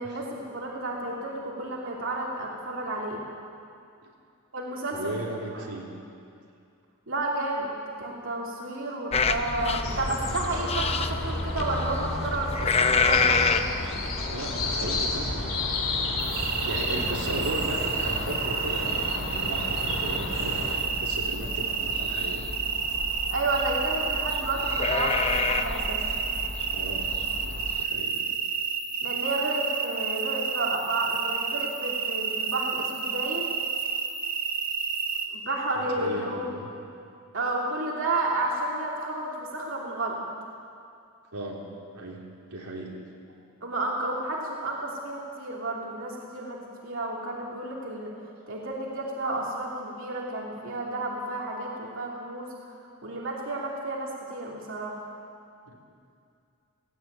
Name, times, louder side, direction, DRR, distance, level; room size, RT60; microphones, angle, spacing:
voice 1, 0.0-3.2 4.5-5.1 7.1-7.7 8.0-13.7 23.3-26.0 29.0-33.6 35.3-36.5 37.3-40.2 43.6-48.1 48.5-52.5 53.0-55.0, right 2 dB, 60° right, -3 dB, 2.8 m, -31 dB
voice 2, 4.9-5.9 14.3-15.5 16.6-22.5 26.7-27.1 27.4-28.2 35.7-36.7 41.3-41.7 41.9-42.2 42.5-43.0 55.7-55.8, right 1 dB, 90° right, -2 dB, 3.5 m, -36 dB
sound 1, 9.1-27.8, left 4 dB, 25° left, 0.8 m, -31 dB
sound 2, 9.8-20.8, left 2 dB, 60° left, 3.2 m, -32 dB
sound 3, 16.2-35.3, right 6 dB, 40° right, 1.7 m, -30 dB
17.5 x 17.0 x 9.1 m, 2.4 s
head